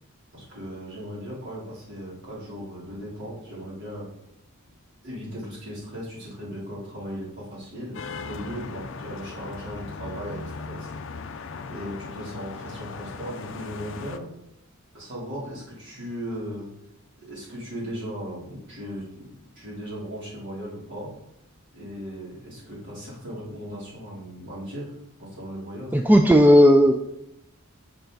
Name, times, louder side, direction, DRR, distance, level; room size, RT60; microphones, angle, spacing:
voice 1, 0.3-4.1 5.0-10.9 11.7-14.3 14.9-16.7 17.3-21.1 21.7-24.9 25.2-25.9, equal, 55° right, -6 dB, 3.2 m, -37 dB
sound 1, 7.9-14.2, left 4 dB, 60° left, 0.5 m, -38 dB
voice 2, 25.9-26.9, equal, 10° right, 4 dB, 0.3 m, -14 dB
7.0 x 6.3 x 3.9 m, 0.83 s
head